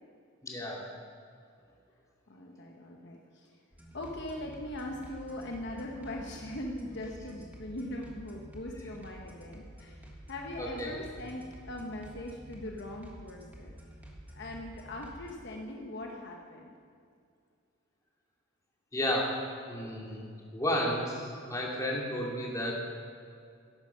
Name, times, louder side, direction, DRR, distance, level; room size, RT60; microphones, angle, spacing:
voice 1, 0.4-0.8 10.6-10.9 18.9-19.4 19.7-20.3 20.5-22.7, equal, 15° left, -3 dB, 2.4 m, -32 dB
voice 2, 2.3-3.5 3.9-10.0 10.3-13.7 14.3-16.7, left 1 dB, 55° left, 0 dB, 1.1 m, -41 dB
sound 1, 3.7-15.3, equal, 10° right, 1.6 m, -50 dB
14.0 x 11.0 x 5.8 m, 2.3 s
head